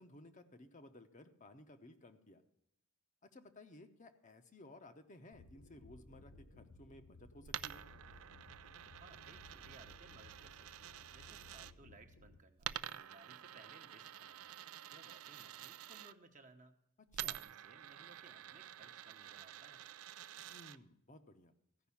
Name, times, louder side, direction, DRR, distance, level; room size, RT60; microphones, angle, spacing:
voice 1, 0.0-2.4 3.3-7.8 17.1-17.4 20.5-21.5, left 1 dB, 35° left, 7 dB, 0.8 m, -57 dB
sound 1, 5.3-12.4, left 2 dB, 70° left, 1.7 m, -60 dB
Coin (dropping), 7.4-11.7 12.6-16.1 17.1-20.8, right 12 dB, 75° right, 0.4 m, -48 dB
voice 2, 9.0-14.6 14.9-16.7 17.4-19.8, right 3 dB, 35° right, 5 dB, 1.0 m, -62 dB
15.0 x 5.4 x 7.0 m, 0.79 s
head